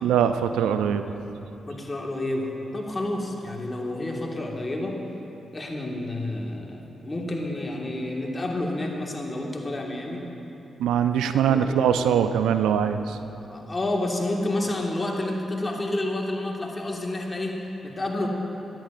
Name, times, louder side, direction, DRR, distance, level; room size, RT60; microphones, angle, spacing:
voice 1, 0.0-1.1 10.8-13.2, right 8 dB, 85° right, 9 dB, 0.3 m, -22 dB
voice 2, 1.7-5.0 5.5-10.3 11.3-11.9 13.4-18.3, left 1 dB, 35° left, 0 dB, 1.7 m, -30 dB
15.5 x 10.5 x 2.5 m, 2.9 s
supercardioid pair, 45°, 0 cm